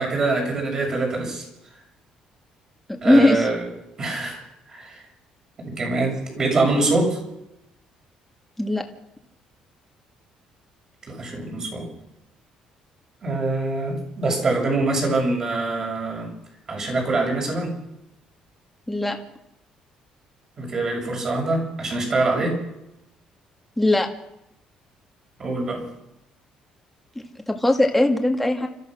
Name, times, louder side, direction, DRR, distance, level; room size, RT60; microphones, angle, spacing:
voice 1, 0.0-1.4 3.0-3.6 4.0-5.0 5.6-7.2 11.1-11.9 13.2-16.3 16.7-17.8 20.6-22.6 25.4-25.8, right 2 dB, 30° right, 0 dB, 7.1 m, -24 dB
voice 2, 3.0-3.5 8.6-8.8 18.9-19.2 23.8-24.1 27.5-28.7, left 1 dB, 5° left, 3 dB, 2.1 m, -19 dB
30.0 x 14.5 x 6.4 m, 0.87 s
cardioid pair, 155°, 2 cm